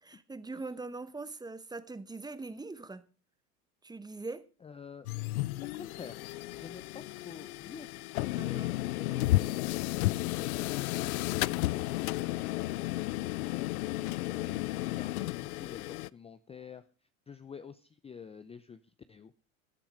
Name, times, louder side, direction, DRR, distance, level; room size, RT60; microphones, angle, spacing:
voice 1, 0.0-3.0 3.8-4.4 8.4-8.8, right 3 dB, 10° right, 1.0 m, -42 dB
voice 2, 4.6-5.1 5.7-6.2 6.5-7.9 8.4-11.9 14.1-16.8 17.3-19.3, left 6 dB, 15° left, 0.6 m, -49 dB
sound 1, 5.1-16.1, left 18 dB, 80° left, 0.6 m, -33 dB
15.5 x 10.0 x 5.1 m
hypercardioid pair, 100°, 43 cm